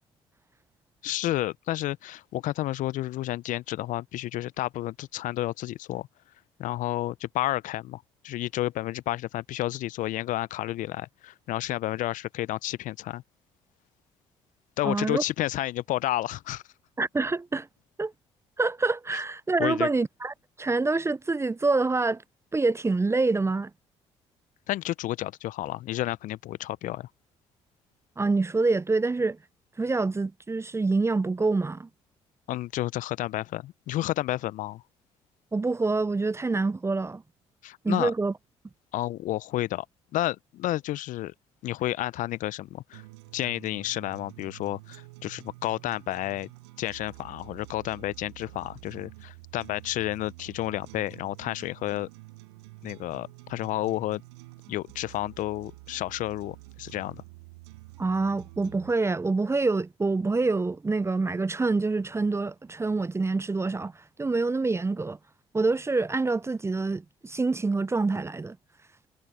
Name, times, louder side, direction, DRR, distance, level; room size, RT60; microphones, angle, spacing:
voice 1, 1.0-6.1 6.6-13.2 14.8-16.6 19.6-19.9 24.7-27.1 32.5-34.8 37.6-38.1 38.9-39.9 40.1-41.3 41.6-43.0 43.3-46.5 46.8-52.1 52.8-54.2 54.7-57.2, left 15 dB, 60° left, 0.8 m, -31 dB
voice 2, 14.8-15.2 17.0-17.7 18.0-18.1 18.6-22.2 22.5-23.7 28.2-29.4 29.8-31.9 35.5-37.2 37.8-38.3 58.0-63.9 64.2-65.2 65.5-68.6, right 3 dB, 20° right, 0.6 m, -26 dB
sound 1, 42.9-58.9, right 23 dB, 80° right, 6.0 m, -48 dB
hypercardioid pair, 50°, 15 cm